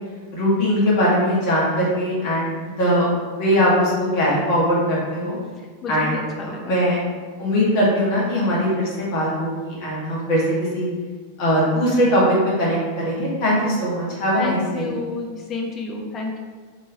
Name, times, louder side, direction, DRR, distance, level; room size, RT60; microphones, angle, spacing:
voice 1, 0.3-2.5 2.8-3.1 3.4-5.4 5.9-6.2 6.4-7.0 7.4-10.4 10.7-10.9 11.4-14.9, equal, 45° left, -6 dB, 1.4 m, -20 dB
voice 2, 5.6-6.7 14.4-16.4, left 4 dB, 25° left, 1 dB, 0.6 m, -30 dB
3.6 x 3.0 x 2.8 m, 1.5 s
figure-of-eight pair, 90°, 0 cm